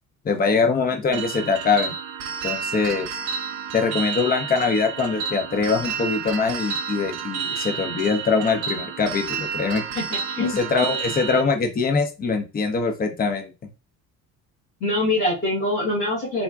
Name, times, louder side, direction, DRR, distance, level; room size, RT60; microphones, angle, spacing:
voice 1, 0.2-1.9 2.4-3.1 3.7-9.8 10.4-13.5, left 4 dB, 20° left, 4 dB, 0.6 m, -23 dB
sound 1, 1.1-11.4, right 7 dB, 65° right, 0.5 m, -30 dB
voice 2, 9.9-10.5 14.8-16.4, left 2 dB, 85° left, -7 dB, 1.5 m, -24 dB
3.6 x 2.1 x 2.3 m, 0.29 s
figure-of-eight pair, 50°, 44 cm